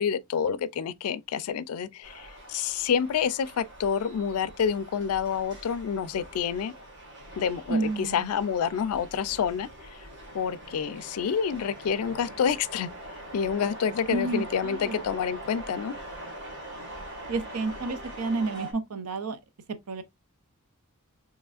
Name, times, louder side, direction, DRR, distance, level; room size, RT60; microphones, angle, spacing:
voice 1, 0.0-6.7 7.4-10.0 10.3-12.9 13.3-15.9, left 7 dB, 75° left, 0.3 m, -28 dB
sound 1, 2.0-18.7, right 1 dB, 55° right, 1.8 m, -43 dB
voice 2, 7.7-8.3 14.1-15.0 17.3-19.4 19.9-20.0, right 3 dB, 90° right, 0.6 m, -30 dB
4.7 x 3.1 x 2.4 m
head